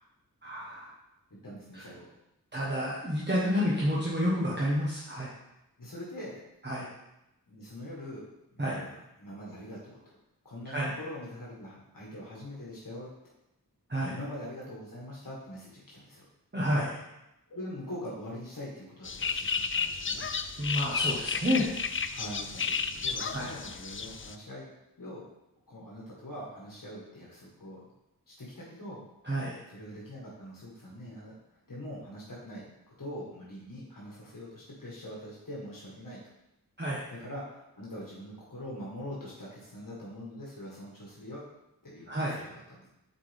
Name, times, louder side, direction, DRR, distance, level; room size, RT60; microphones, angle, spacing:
voice 1, 0.4-0.9 2.5-5.3 6.6-6.9 8.6-8.8 10.7-10.9 13.9-14.2 16.5-17.0 20.6-21.7 23.3-23.5 29.2-29.6 36.8-37.0 42.1-42.4, equal, 30° right, -6 dB, 1.5 m, -29 dB
voice 2, 1.4-2.1 5.8-6.4 7.5-8.3 8.5-10.0 10.4-13.1 14.1-16.2 17.5-20.2 22.1-24.7 25.0-25.2 25.7-27.8 28.3-29.0 29.7-31.3 31.7-32.6 33.0-36.2 37.1-41.4 41.8-42.9, left 1 dB, 65° left, -6 dB, 1.9 m, -43 dB
sound 1, 19.0-24.3, left 5 dB, 35° left, 0.4 m, -32 dB
7.2 x 4.8 x 3.6 m, 0.89 s
wide cardioid pair, 45°, 35 cm